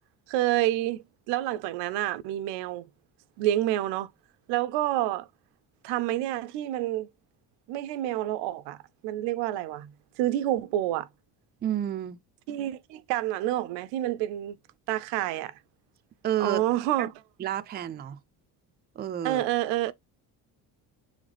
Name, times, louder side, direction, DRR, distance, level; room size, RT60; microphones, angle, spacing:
voice 1, 0.3-2.9 3.4-4.1 4.5-5.3 5.8-7.1 7.7-8.8 9.0-11.1 12.5-14.6 14.9-15.5 16.4-17.1 19.2-19.9, right 14 dB, 85° right, 0.6 m, -28 dB
voice 2, 11.6-12.2 16.2-16.6 17.0-17.1 17.4-18.2 19.0-19.5, right 11 dB, 25° right, 0.4 m, -30 dB
4.0 x 3.3 x 3.3 m
cardioid pair, 100°, 43 cm